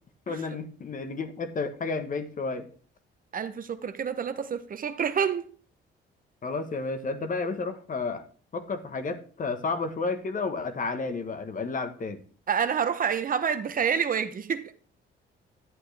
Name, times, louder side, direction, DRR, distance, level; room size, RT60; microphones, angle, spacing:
voice 1, 0.3-2.7 6.4-8.2 8.5-12.2, left 4 dB, 40° left, 1.1 m, -31 dB
voice 2, 3.3-5.4 12.5-14.7, right 7 dB, 45° right, 0.8 m, -28 dB
11.0 x 8.4 x 3.3 m
cardioid pair, 90°, 20 cm